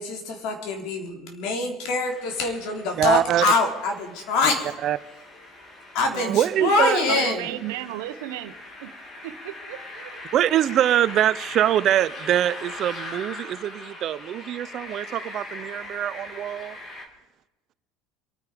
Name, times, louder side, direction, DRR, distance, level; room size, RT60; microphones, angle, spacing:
voice 1, 0.0-4.7 5.9-7.5, left 3 dB, 65° left, 3.8 m, -24 dB
sound 1, 2.0-17.1, left 2 dB, 35° left, 3.5 m, -41 dB
voice 2, 3.0-3.4 4.8-5.0 6.3-7.4 7.6-7.7 10.3-16.8, right 11 dB, 50° right, 0.7 m, -23 dB
voice 3, 6.1-8.9 9.2-10.2, right 14 dB, 85° right, 1.2 m, -36 dB
27.5 x 9.6 x 5.2 m
supercardioid pair, 105°, 0 cm